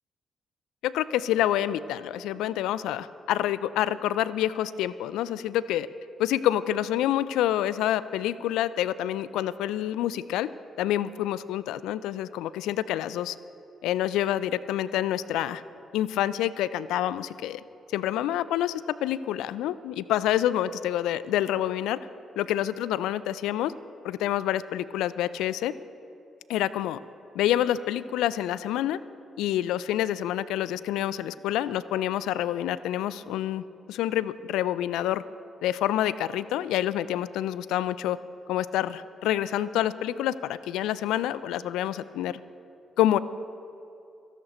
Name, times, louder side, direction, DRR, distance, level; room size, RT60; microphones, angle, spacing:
voice 1, 0.8-5.9 6.2-10.5 10.8-13.4 13.8-15.6 15.9-17.6 17.9-22.0 22.4-23.7 24.0-25.7 26.5-27.0 27.3-29.0 29.4-35.2 35.6-38.2 38.5-42.4 43.0-43.2, left 12 dB, 75° left, 17 dB, 0.3 m, -27 dB
26.5 x 11.0 x 3.0 m, 2.7 s
hypercardioid pair, 40°, 0 cm